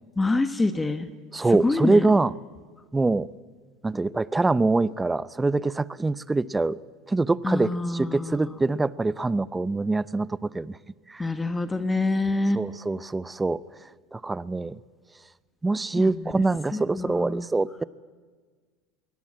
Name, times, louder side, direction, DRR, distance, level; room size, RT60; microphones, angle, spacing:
voice 1, 0.2-1.1 1.6-2.1 7.4-8.5 11.2-12.6 15.9-16.3 16.7-17.4, left 2 dB, 15° left, 10 dB, 1.2 m, -26 dB
voice 2, 1.3-2.3 2.9-3.3 3.8-6.8 7.1-10.8 11.1-11.3 12.6-13.6 14.1-14.8 15.6-17.8, right 3 dB, 15° right, 19 dB, 0.7 m, -24 dB
22.5 x 18.5 x 8.8 m, 1.5 s
supercardioid pair, 100°, 0 cm